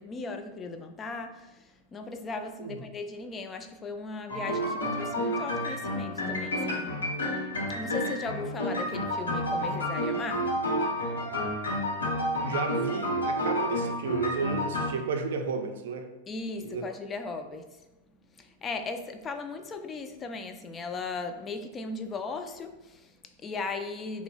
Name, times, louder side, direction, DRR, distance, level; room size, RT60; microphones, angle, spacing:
voice 1, 0.0-7.0 7.8-10.9 16.3-17.9 18.1-24.2, left 3 dB, 25° left, 7 dB, 0.3 m, -37 dB
sound 1, 4.3-14.9, equal, 85° left, 0.8 m, -30 dB
voice 2, 12.3-16.1 16.6-16.9, right 4 dB, 70° right, 6 dB, 0.4 m, -33 dB
2.8 x 2.0 x 3.8 m, 1.0 s
hypercardioid pair, 95°, 0 cm